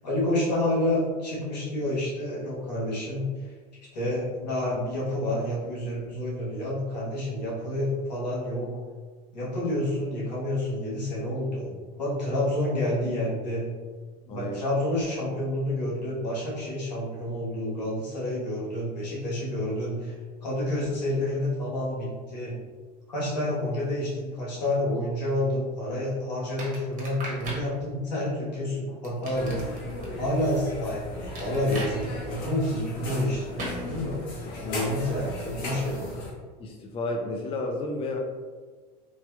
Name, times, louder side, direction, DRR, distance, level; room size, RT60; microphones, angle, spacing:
voice 1, 0.0-3.5 3.9-8.8 9.3-13.6 14.2-20.1 20.4-22.5 23.1-29.7 30.2-34.2 34.6-36.1, left 1 dB, 85° left, -6 dB, 1.2 m, -29 dB
sound 1, 26.6-27.7 29.0-30.1 31.3-31.9 33.6-33.8, right 2 dB, 40° right, 1.1 m, -37 dB
sound 2, 29.3-36.3, left 1 dB, 65° left, 1.0 m, -36 dB
voice 2, 36.6-38.2, left 2 dB, 25° left, 1 dB, 0.4 m, -32 dB
3.1 x 2.8 x 2.3 m, 1.5 s
hypercardioid pair, 85°, 21 cm